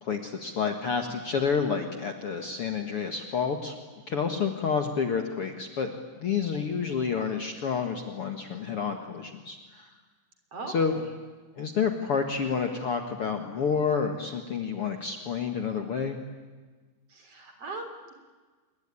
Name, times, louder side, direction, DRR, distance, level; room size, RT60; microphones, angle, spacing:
voice 1, 0.0-3.8 4.1-5.9 6.2-9.9 10.7-11.0 11.6-16.2, left 6 dB, 50° left, 5 dB, 2.0 m, -29 dB
voice 2, 10.5-11.1 17.1-18.1, right 3 dB, 45° right, 6 dB, 4.2 m, -40 dB
27.0 x 22.5 x 9.9 m, 1.4 s
omnidirectional pair, 4.0 m